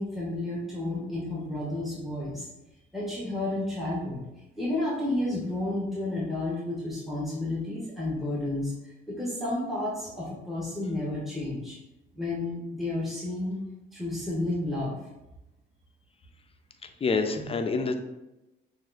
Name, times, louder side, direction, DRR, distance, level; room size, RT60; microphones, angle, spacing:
voice 1, 0.0-2.5 2.9-4.2 4.6-8.7 9.1-11.8 12.1-13.6 13.9-14.9 17.4-17.5, left 2 dB, ahead, -6 dB, 1.0 m, -31 dB
voice 2, 16.8-17.9, left 4 dB, 30° left, 6 dB, 0.4 m, -27 dB
6.0 x 2.5 x 2.4 m, 0.98 s
cardioid pair, 90°, 20 cm